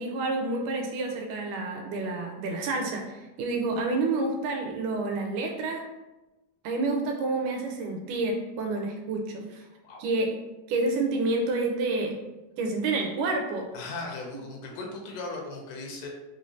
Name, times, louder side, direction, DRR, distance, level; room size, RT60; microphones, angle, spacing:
voice 1, 0.0-5.9 6.6-9.6 10.0-10.3 10.7-12.1 12.6-13.7 14.3-14.4, right 3 dB, 85° right, 2 dB, 2.1 m, -29 dB
voice 2, 13.7-16.1, left 3 dB, 80° left, 1 dB, 2.2 m, -37 dB
5.4 x 3.2 x 2.7 m, 1.0 s
omnidirectional pair, 3.8 m